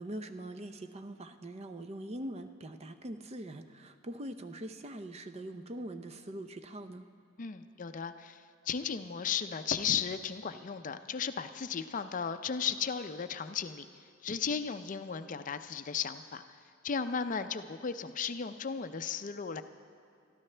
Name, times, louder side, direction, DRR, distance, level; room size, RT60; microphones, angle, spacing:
voice 1, 0.0-7.0, right 1 dB, 30° right, 9 dB, 0.6 m, -42 dB
voice 2, 7.4-13.9 14.2-16.4 16.8-19.6, left 6 dB, 40° left, 10 dB, 0.5 m, -35 dB
22.5 x 13.0 x 3.3 m, 2.5 s
head